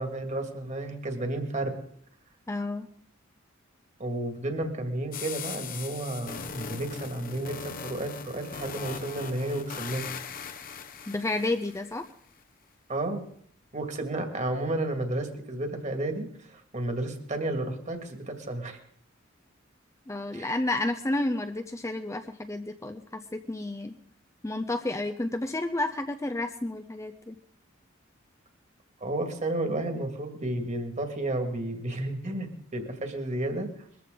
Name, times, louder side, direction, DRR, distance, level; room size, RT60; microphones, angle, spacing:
voice 1, 0.0-1.8 4.0-10.1 12.9-13.2 13.7-18.8 20.3-20.5 29.0-33.7, right 1 dB, 35° right, 5 dB, 2.1 m, -32 dB
voice 2, 2.5-2.9 11.1-12.1 20.1-23.9 24.4-27.4, left 2 dB, 15° left, 7 dB, 0.6 m, -31 dB
sound 1, 5.1-12.1, left 6 dB, 45° left, 0.9 m, -40 dB
21.5 x 14.0 x 3.9 m, 0.63 s
head